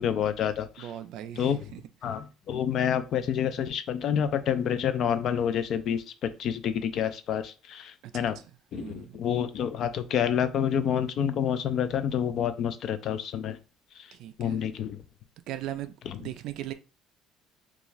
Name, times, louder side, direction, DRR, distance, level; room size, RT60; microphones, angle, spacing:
voice 1, 0.0-0.9 1.4-1.7 2.0-8.4 8.7-13.6 14.0-14.1 14.4-15.0 16.1-16.2, left 8 dB, 45° left, 0.3 m, -28 dB
voice 2, 0.8-1.8 8.1-8.3 8.7-9.2 14.1-14.6 15.5-16.7, right 12 dB, 60° right, 0.3 m, -38 dB
2.5 x 2.3 x 3.0 m
cardioid pair, 160°, 0 cm